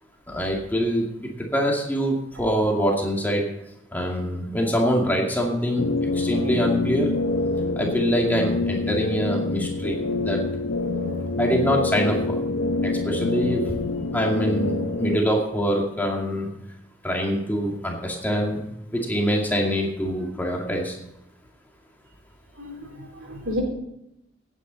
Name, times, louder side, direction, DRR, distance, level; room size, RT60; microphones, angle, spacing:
voice 1, 0.3-3.4 3.9-5.8 6.1-7.1 7.8-10.0 10.2-10.4 11.4-12.4 12.8-13.6 14.1-16.5 17.0-18.6 18.9-21.0, equal, 10° left, -1 dB, 2.3 m, -24 dB
sound 1, 5.8-15.2, left 3 dB, 85° left, 0.9 m, -26 dB
voice 2, 22.6-23.6, left 1 dB, 85° right, 2 dB, 3.7 m, -33 dB
16.5 x 9.4 x 4.0 m, 0.83 s
head